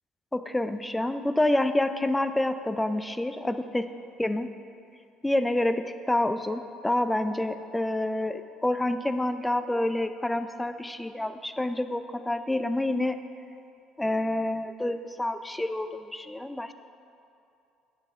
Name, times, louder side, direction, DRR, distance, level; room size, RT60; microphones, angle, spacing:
voice 1, 0.3-3.9 4.2-4.5 5.2-13.2 14.0-16.7, left 1 dB, 10° left, 10 dB, 0.4 m, -28 dB
10.0 x 6.8 x 2.5 m, 2.7 s
supercardioid pair, 75°, 0 cm